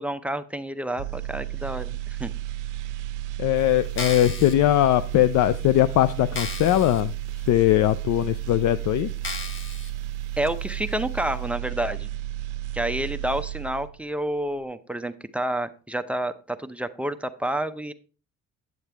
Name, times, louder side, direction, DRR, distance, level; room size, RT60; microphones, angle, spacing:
voice 1, 0.0-2.3 10.4-12.1 12.7-17.9, right 1 dB, 5° right, 9 dB, 0.6 m, -29 dB
sound 1, 1.0-14.1 14.4-14.6, right 15 dB, 90° right, 0.5 m, -33 dB
voice 2, 3.4-7.1 7.5-9.1, left 14 dB, 75° left, 13 dB, 0.5 m, -20 dB
sound 2, 3.8-4.5 5.2-5.3 5.8-5.9 6.3-7.0 7.5-7.6 8.3-8.4 9.2-9.9 10.5-10.6, left 4 dB, 40° left, 1.3 m, -34 dB
9.4 x 7.3 x 3.4 m, 0.36 s
cardioid pair, 90°, 30 cm